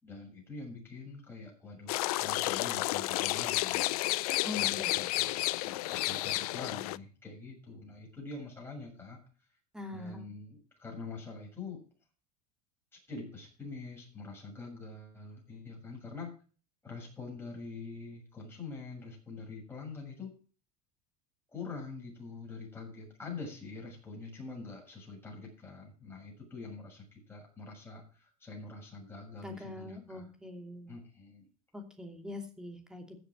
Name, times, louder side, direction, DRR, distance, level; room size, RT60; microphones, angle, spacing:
voice 1, 0.0-3.9 4.5-9.2 9.9-11.8 12.9-16.3 16.8-20.3 21.5-30.3 30.9-31.5, left 3 dB, 10° left, -2 dB, 7.3 m, -45 dB
sound 1, 1.9-7.0, left 19 dB, 80° left, 0.5 m, -31 dB
voice 2, 4.4-5.0 9.7-10.3 29.4-30.9 31.7-33.2, left 2 dB, 5° right, 4 dB, 2.7 m, -43 dB
15.5 x 6.8 x 6.3 m, 0.39 s
supercardioid pair, 125°, 19 cm